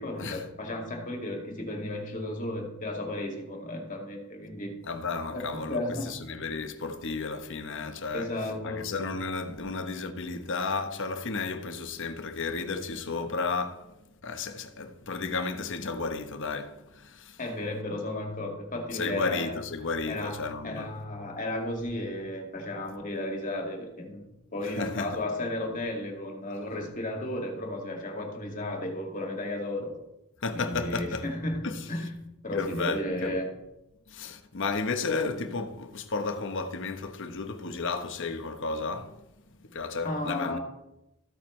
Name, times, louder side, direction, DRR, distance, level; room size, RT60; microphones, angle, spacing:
voice 1, 0.0-4.7 5.3-6.4 8.1-8.9 17.4-19.6 20.1-24.2 24.5-29.9 30.5-33.5 40.0-40.6, left 1 dB, 35° left, 2.1 m, -34 dB
voice 2, 4.8-5.8 6.1-8.3 8.6-13.9 14.2-17.4 18.9-21.0 24.6-25.1 30.4-31.2 31.6-31.9 32.5-33.4 34.1-39.2 39.7-40.6, left 4 dB, 55° left, 1.0 m, -33 dB
14.5 x 8.9 x 3.2 m
head